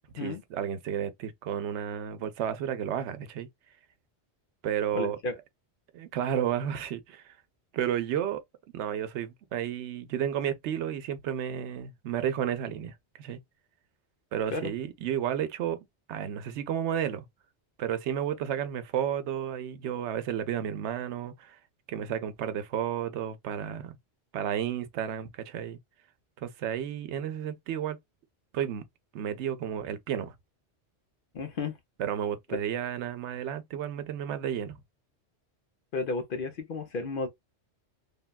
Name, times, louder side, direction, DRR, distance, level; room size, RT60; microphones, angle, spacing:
voice 1, 0.1-3.5 4.6-5.2 5.9-7.3 7.7-8.4 8.7-13.4 14.3-17.2 17.8-21.6 21.9-24.0 24.3-25.8 26.4-28.0 28.5-28.8 29.1-30.3 32.0-34.8, right 9 dB, 85° right, 0.9 m, -32 dB
voice 2, 4.9-5.3 14.5-14.7 31.3-31.7 32.5-32.6 35.9-37.3, left 3 dB, 55° left, 0.8 m, -32 dB
3.3 x 2.2 x 2.3 m
omnidirectional pair, 1.1 m